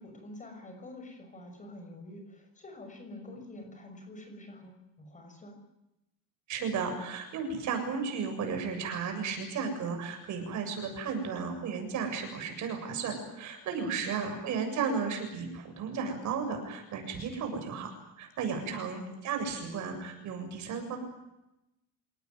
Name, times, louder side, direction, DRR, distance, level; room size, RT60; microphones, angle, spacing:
voice 1, 0.0-5.6 13.8-14.3 18.6-18.9, left 1 dB, 20° left, 5 dB, 6.2 m, -47 dB
voice 2, 6.5-21.0, right 5 dB, 55° right, 5 dB, 7.4 m, -34 dB
27.5 x 18.5 x 9.4 m, 0.91 s
cardioid pair, 175°, 35 cm